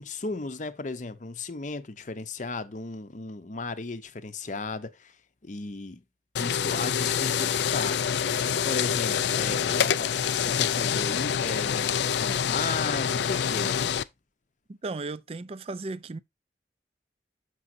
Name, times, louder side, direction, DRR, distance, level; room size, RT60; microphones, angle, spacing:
voice 1, 0.0-5.2 5.4-6.0 6.4-8.0 8.6-13.9, left 3 dB, 45° left, 0.7 m, -35 dB
sound 1, 6.4-14.0, left 8 dB, 65° left, 0.4 m, -26 dB
voice 2, 14.7-16.2, right 3 dB, 35° right, 0.4 m, -35 dB
6.8 x 6.2 x 2.6 m
head